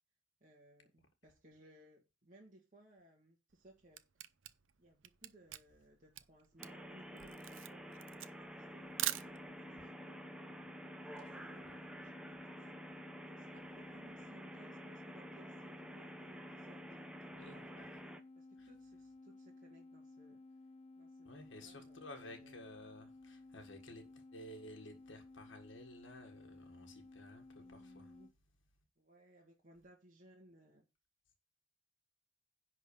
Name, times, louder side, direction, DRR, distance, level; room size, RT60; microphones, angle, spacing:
voice 1, 0.4-4.0 4.8-10.3 11.0-18.0 18.4-20.4 21.0-22.6 27.6-28.3 29.0-30.8, right 1 dB, 40° right, 1.9 m, -63 dB
Camera, 3.5-9.8, right 13 dB, 75° right, 0.6 m, -43 dB
sound 1, 6.6-18.2, equal, 5° right, 0.8 m, -50 dB
sound 2, 8.8-28.3, left 2 dB, 30° left, 0.5 m, -57 dB
voice 2, 17.3-18.0 18.6-18.7 21.2-28.2, left 1 dB, 65° left, 1.6 m, -54 dB
10.5 x 4.1 x 6.6 m
head